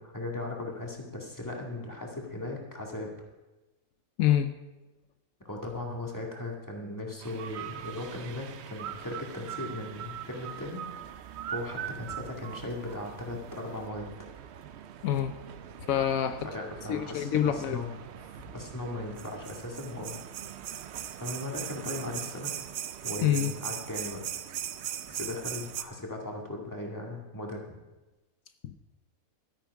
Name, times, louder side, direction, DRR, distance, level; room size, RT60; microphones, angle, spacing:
voice 1, 0.0-3.1 5.4-10.8 11.5-14.1 16.4-17.9 18.5-20.2 21.2-22.5 23.0-24.2 25.1-27.6, left 2 dB, 15° left, -1 dB, 2.1 m, -38 dB
voice 2, 4.2-4.5 15.0-15.3 15.9-16.5 16.9-17.8 23.2-23.5 28.6-28.8, left 10 dB, 80° left, 9 dB, 1.1 m, -26 dB
sound 1, 7.2-25.8, right 9 dB, 60° right, 0.8 m, -40 dB
13.0 x 9.9 x 4.7 m, 1.1 s
omnidirectional pair, 1.4 m